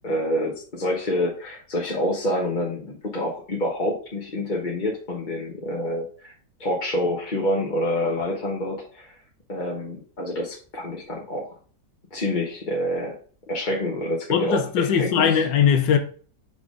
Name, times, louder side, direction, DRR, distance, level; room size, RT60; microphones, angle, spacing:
voice 1, 0.0-6.3 6.6-9.1 9.5-11.5 12.1-13.2 13.5-15.4, left 1 dB, 30° left, 1.1 m, -27 dB
voice 2, 14.3-16.0, left 7 dB, 80° left, 1.5 m, -20 dB
5.8 x 4.0 x 4.8 m
omnidirectional pair, 1.9 m